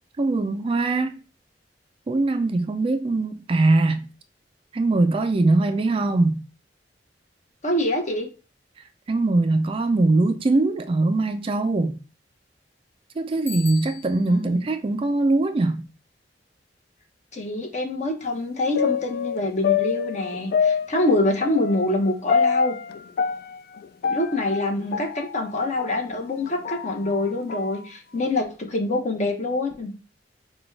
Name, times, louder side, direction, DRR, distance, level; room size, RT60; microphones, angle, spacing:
voice 1, 0.2-1.1 2.1-4.1 4.7-6.4 9.1-12.0 13.2-15.9, right 2 dB, 30° right, 0.3 m, -21 dB
voice 2, 7.6-8.3 14.3-14.6 17.3-22.8 24.1-29.9, left 2 dB, 40° left, 0.9 m, -25 dB
Bicycle bell, 13.5-14.4, left 8 dB, 10° left, 1.7 m, -39 dB
sound 1, 18.7-26.0 26.4-27.8 28.2-28.3, left 6 dB, 60° left, 0.3 m, -26 dB
6.0 x 2.3 x 3.2 m
head